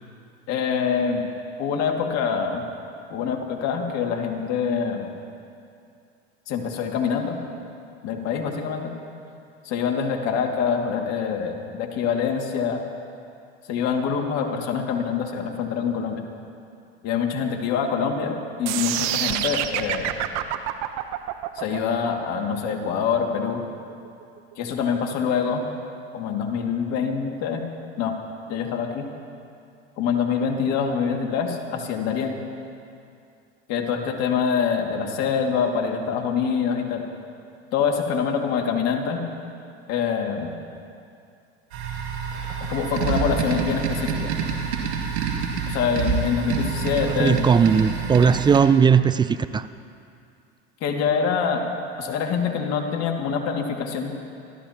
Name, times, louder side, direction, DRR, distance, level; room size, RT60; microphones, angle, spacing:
voice 1, 0.5-1.3 1.6-2.7 3.1-5.1 6.5-7.4 8.0-8.9 9.7-12.8 13.7-16.2 17.0-20.3 21.6-23.7 24.6-25.6 26.1-27.6 28.0-28.2 28.5-29.1 30.0-32.4 33.7-37.1 37.7-39.2 39.9-40.5 42.7-44.3 45.7-47.4 50.8-51.7 52.0-54.1, left 6 dB, 55° left, 2 dB, 2.2 m, -25 dB
sound 1, 18.7-24.7, right 13 dB, 55° right, 0.9 m, -28 dB
sound 2, 41.7-48.6, right 6 dB, 80° right, 2.5 m, -27 dB
voice 2, 47.0-49.7, right 6 dB, 15° right, 14 dB, 0.4 m, -18 dB
28.0 x 13.5 x 2.9 m, 2.5 s
hypercardioid pair, 90°, 32 cm